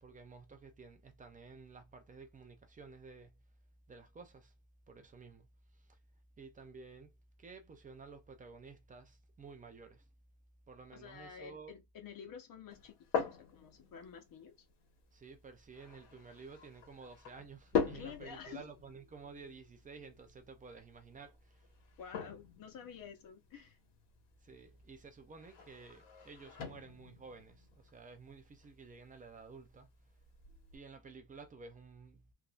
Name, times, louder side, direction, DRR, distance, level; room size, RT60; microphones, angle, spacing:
voice 1, 0.0-3.4 3.9-4.5 4.9-5.5 5.9-6.0 6.4-7.1 7.4-10.0 10.7-11.7 15.1-21.7 24.4-29.9 30.7-32.2, right 4 dB, 20° right, 0.3 m, -53 dB
voice 2, 10.9-14.5 17.9-18.7 22.0-23.8, left 7 dB, 50° left, 0.9 m, -50 dB
sound 1, 12.7-30.8, left 7 dB, 85° left, 1.4 m, -43 dB
3.4 x 2.5 x 2.3 m
cardioid pair, 165°, 43 cm